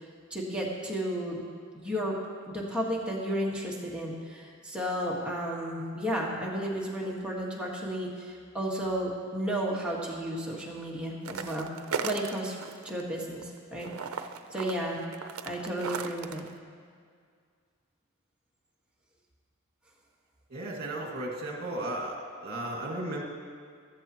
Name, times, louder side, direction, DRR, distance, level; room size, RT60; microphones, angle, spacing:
voice 1, 0.3-1.5 1.7-2.2 2.5-11.7 12.0-12.6 12.9-13.9 14.5-15.0 15.5-16.5, equal, 5° right, -4 dB, 1.7 m, -33 dB
sound 1, 11.2-13.0 13.3-16.5, right 5 dB, 80° right, 0.6 m, -36 dB
voice 2, 20.5-23.2, right 1 dB, 50° right, -1 dB, 2.1 m, -35 dB
14.5 x 14.5 x 3.1 m, 2.1 s
head